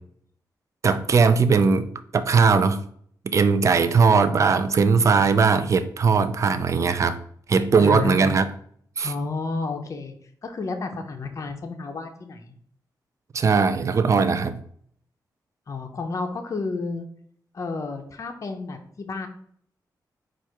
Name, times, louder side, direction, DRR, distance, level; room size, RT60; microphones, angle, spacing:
voice 1, 0.8-2.8 3.3-7.2 7.5-8.4 9.0-9.1 13.3-14.6, right 5 dB, 45° right, 0.4 m, -19 dB
voice 2, 7.8-8.4 9.0-10.1 10.4-12.6 15.7-17.1 17.5-19.3, left 3 dB, 45° left, 0.6 m, -31 dB
4.7 x 2.4 x 4.4 m
wide cardioid pair, 105°, 7 cm